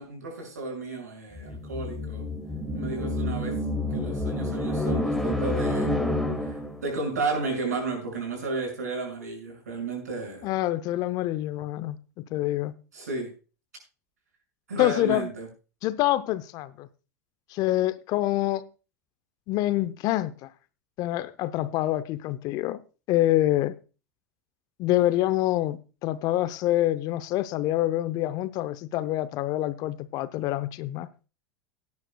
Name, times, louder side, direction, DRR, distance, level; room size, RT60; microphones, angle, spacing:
voice 1, 0.0-2.3 2.7-3.6 3.9-6.0 6.4-10.5 12.9-13.3 14.7-15.5, right 3 dB, 80° right, 6.2 m, -33 dB
sound 1, 1.4-6.9, left 1 dB, ahead, 2.2 m, -28 dB
voice 2, 10.4-12.8 14.8-15.3 15.8-16.9 17.5-18.7 19.5-20.5 21.0-22.8 23.1-23.8 24.8-31.1, left 15 dB, 50° left, 0.7 m, -26 dB
18.0 x 9.7 x 2.3 m
hypercardioid pair, 85°, 9 cm